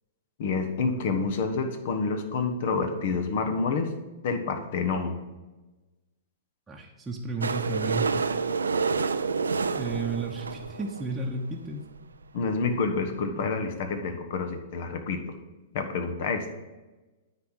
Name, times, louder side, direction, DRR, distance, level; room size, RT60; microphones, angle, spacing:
voice 1, 0.4-3.9 4.2-5.2 12.3-15.2 15.7-16.4, left 4 dB, 60° left, 6 dB, 1.2 m, -28 dB
voice 2, 6.7-8.1 9.8-11.8, right 3 dB, 10° right, -2 dB, 1.0 m, -32 dB
sound 1, 7.4-11.3 12.0-12.1 12.2-12.3 12.5-12.6 13.0-13.1, right 4 dB, 85° right, 0.4 m, -28 dB
9.5 x 4.2 x 6.5 m, 1.1 s
hypercardioid pair, 110°, 0 cm